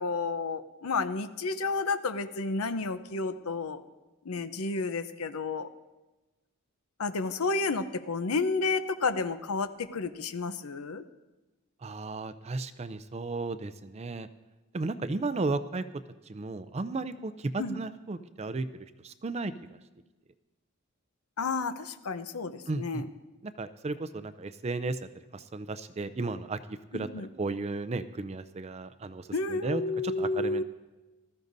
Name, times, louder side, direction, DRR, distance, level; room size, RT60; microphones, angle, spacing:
voice 1, 0.0-3.8 4.2-5.7 7.0-11.0 17.6-17.8 21.4-23.1 26.9-27.3 29.3-30.6, left 3 dB, 85° left, 11 dB, 0.7 m, -31 dB
voice 2, 11.8-14.3 14.7-15.8 16.3-18.7 19.0-19.5 22.7-23.0 23.6-25.0 25.5-26.6 26.9-27.1 27.4-29.2 29.5-30.6, right 3 dB, 30° right, 12 dB, 0.4 m, -34 dB
19.5 x 13.5 x 2.7 m, 1.1 s
head